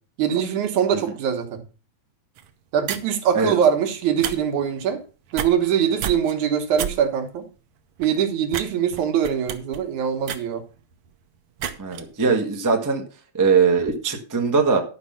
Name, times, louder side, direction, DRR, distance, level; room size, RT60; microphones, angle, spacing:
voice 1, 0.2-1.6 2.7-5.0 5.3-7.4 8.0-10.6, right 8 dB, 80° right, 5 dB, 2.8 m, -22 dB
sound 1, 2.4-2.5 2.8-3.2 4.1-4.4 4.6-4.9 5.3-5.8 6.0-6.3 6.8-6.9 7.4-7.5 8.0-8.2 8.5-8.6 8.9-11.1 11.6-12.0, right 9 dB, 65° right, 1.6 m, -30 dB
voice 2, 11.8-13.0 13.3-14.8, right 5 dB, 15° right, 3 dB, 0.6 m, -20 dB
11.5 x 6.1 x 5.7 m, 0.36 s
omnidirectional pair, 3.3 m